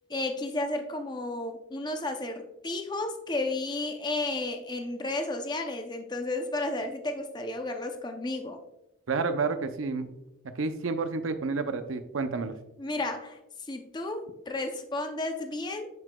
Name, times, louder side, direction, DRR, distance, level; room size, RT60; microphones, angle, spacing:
voice 1, 0.1-8.6 12.8-13.4 13.7-15.9, left 2 dB, 20° left, 5 dB, 0.5 m, -32 dB
voice 2, 9.1-10.1 10.6-12.6, right 4 dB, 85° right, 9 dB, 0.6 m, -30 dB
9.4 x 4.8 x 2.2 m, 0.87 s
head